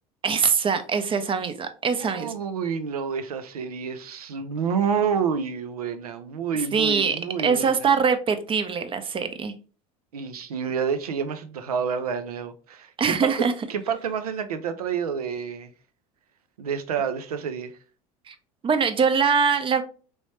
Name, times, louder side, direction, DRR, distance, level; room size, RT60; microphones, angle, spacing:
voice 1, 0.2-2.3 6.7-7.2 7.4-9.5 13.0-13.5 18.3-18.4 18.6-19.8, right 6 dB, 30° right, 0.6 m, -23 dB
voice 2, 2.0-7.9 10.1-13.3 13.7-15.7 16.6-17.8, right 6 dB, 90° right, 0.4 m, -29 dB
3.2 x 3.1 x 2.9 m
hypercardioid pair, 75°, 19 cm